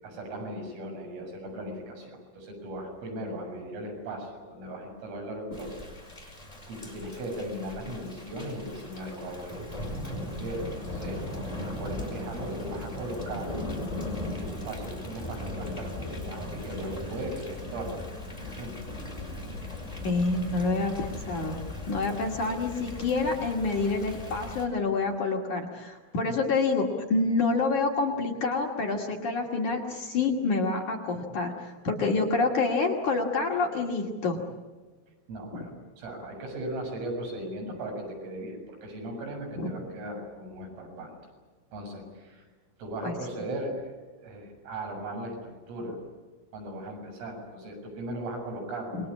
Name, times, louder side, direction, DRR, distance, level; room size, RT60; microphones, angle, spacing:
voice 1, 0.0-5.8 6.1-6.3 6.7-9.6 10.1-11.2 11.7-13.5 14.3-18.0 18.4-18.8 35.3-35.7 36.0-41.2 41.7-42.4 42.8-43.9 44.2-46.0 46.5-49.1, right 1 dB, 85° right, 1 dB, 9.8 m, -38 dB
Thunder / Rain, 5.5-24.6, left 1 dB, 10° left, 4.7 m, -38 dB
voice 2, 20.0-21.6 21.9-34.4 35.5-35.7 39.6-39.7 43.0-43.2 48.9-49.1, left 3 dB, 50° left, 0 dB, 3.0 m, -27 dB
27.5 x 22.5 x 8.6 m, 1.3 s
omnidirectional pair, 5.7 m